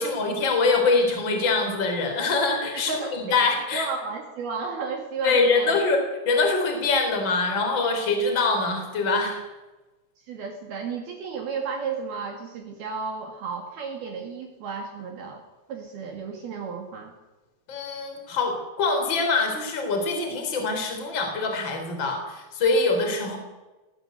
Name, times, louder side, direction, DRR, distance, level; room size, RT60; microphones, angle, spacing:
voice 1, 0.0-3.9 5.2-9.4 17.7-23.4, left 3 dB, 25° left, 4 dB, 4.3 m, -24 dB
voice 2, 2.7-3.4 3.7-5.8 10.3-15.4 15.7-17.1, right 5 dB, 60° right, 3 dB, 3.9 m, -33 dB
19.5 x 18.5 x 8.1 m, 1.1 s
omnidirectional pair, 5.3 m